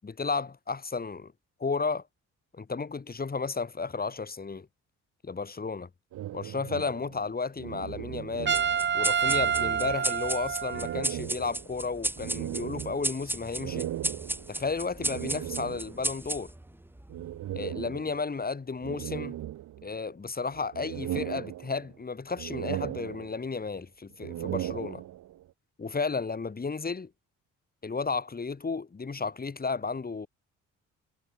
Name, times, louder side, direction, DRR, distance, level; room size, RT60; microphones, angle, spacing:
voice 1, 0.0-1.3 1.6-2.0 2.5-4.7 5.2-5.9 6.3-8.6 8.9-13.9 14.5-16.5 17.5-19.4 19.8-25.0 25.8-27.1 27.8-30.3, left 4 dB, 30° left, 6.1 m, -33 dB
sound 1, 6.1-8.9 9.2-10.3 10.7-16.1 17.1-18.4 18.8-20.1 20.5-22.0 22.3-23.7 24.1-25.4, right 13 dB, 80° right, 2.4 m, -38 dB
sound 2, 8.5-17.4, right 1 dB, 5° right, 3.7 m, -35 dB
Trumpet, 8.5-11.1, right 7 dB, 40° right, 1.1 m, -28 dB
cardioid pair, 90°, 30 cm